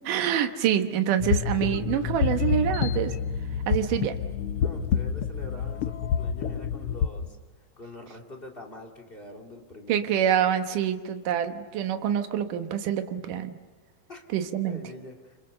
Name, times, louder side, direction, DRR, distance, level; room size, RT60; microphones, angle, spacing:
voice 1, 0.1-3.1 3.7-4.2 9.9-13.6 14.3-14.8, right 9 dB, 70° right, 7 dB, 2.7 m, -26 dB
sound 1, 1.2-7.1, left 7 dB, 80° left, 1.3 m, -28 dB
voice 2, 4.6-7.4 7.8-10.0 14.1-14.3 14.7-15.3, left 1 dB, 20° left, 1 dB, 2.2 m, -44 dB
27.5 x 27.0 x 6.8 m, 1.4 s
omnidirectional pair, 4.1 m